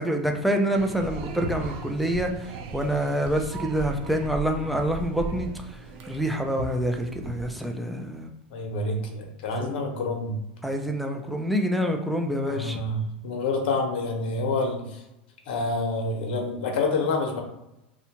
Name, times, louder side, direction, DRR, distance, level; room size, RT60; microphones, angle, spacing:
voice 1, 0.0-8.3 9.6-9.8 10.6-12.8, equal, ahead, 3 dB, 0.3 m, -27 dB
sound 1, 0.7-7.5, right 3 dB, 55° right, 0.5 m, -37 dB
voice 2, 8.5-10.4 12.5-15.0 15.5-17.4, left 3 dB, 70° left, 3 dB, 0.7 m, -28 dB
2.7 x 2.1 x 2.8 m, 0.93 s
supercardioid pair, 120°, 6 cm